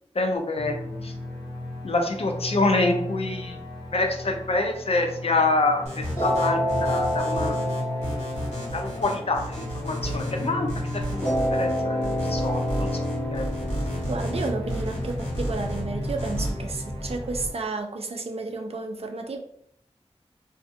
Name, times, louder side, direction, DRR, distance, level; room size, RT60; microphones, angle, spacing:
voice 1, 0.2-0.7 1.0-1.1 1.8-3.6 3.9-7.6 8.7-11.2 11.5-12.9 13.3-13.4, left 2 dB, 60° left, 3 dB, 0.5 m, -26 dB
sound 1, 0.5-17.5, left 1 dB, ahead, 1.2 m, -33 dB
sound 2, 5.9-16.5, right 1 dB, 90° left, 1.2 m, -33 dB
sound 3, 6.2-10.5 11.2-16.2, equal, 20° left, 1.2 m, -30 dB
voice 2, 14.1-19.4, right 3 dB, 60° right, 4 dB, 0.4 m, -32 dB
2.5 x 2.4 x 2.5 m, 0.69 s
wide cardioid pair, 65°, 11 cm